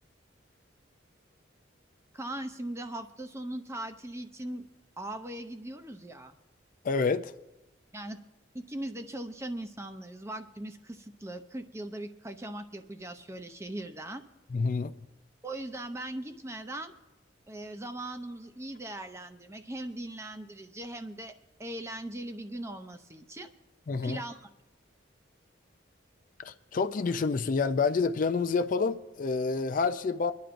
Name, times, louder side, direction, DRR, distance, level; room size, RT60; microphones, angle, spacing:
voice 1, 2.1-4.7 5.0-6.4 7.9-8.2 8.5-14.2 15.4-16.9 17.5-21.3 21.6-23.5 24.0-24.5, right 1 dB, 15° right, 0.5 m, -39 dB
voice 2, 6.8-7.3 14.5-15.0 23.9-24.2 26.4-30.3, left 4 dB, 45° left, 0.4 m, -28 dB
25.5 x 10.5 x 2.6 m
head